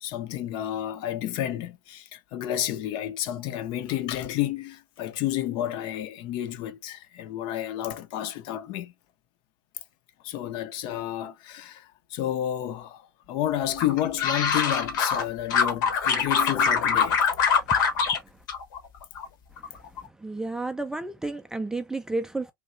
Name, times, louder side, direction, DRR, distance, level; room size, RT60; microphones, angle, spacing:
voice 1, 0.0-8.9 10.2-17.5, left 12 dB, 45° left, 0.6 m, -31 dB
sound 1, 13.8-15.2 15.5-18.2 18.5-19.3 19.6-20.0, left 6 dB, 60° left, 1.1 m, -23 dB
voice 2, 20.2-22.5, right 2 dB, 5° right, 0.4 m, -31 dB
3.3 x 2.7 x 2.5 m
hypercardioid pair, 95°, 11 cm